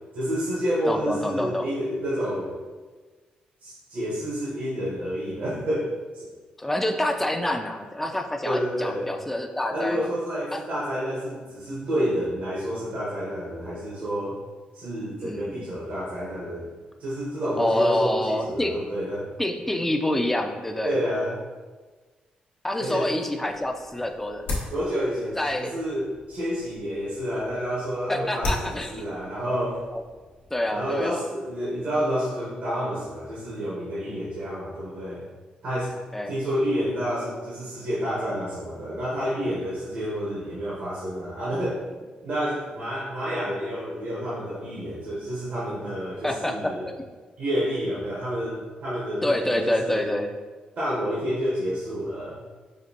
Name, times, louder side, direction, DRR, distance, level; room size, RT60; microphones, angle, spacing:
voice 1, 0.1-2.5 3.6-6.3 8.4-9.1 9.7-14.4 14.7-16.7 17.0-19.3 20.8-21.4 22.8-23.1 24.7-29.8 30.7-35.2 35.6-35.9 36.3-41.8 42.2-46.8 47.4-50.0 50.8-52.4, equal, 70° right, -9 dB, 1.2 m, -29 dB
voice 2, 0.9-1.7 6.6-10.1 10.5-10.6 15.2-15.7 17.6-18.7 19.4-20.9 22.6-24.5 25.4-25.7 28.1-29.1 29.9-30.0 30.5-31.2 36.1-36.4 46.2-46.9 49.2-50.3, left 1 dB, 10° left, 4 dB, 0.4 m, -27 dB
sound 1, 23.4-31.1, left 2 dB, 85° left, 0.9 m, -38 dB
5.1 x 2.4 x 2.8 m, 1.3 s
supercardioid pair, 65°, 3 cm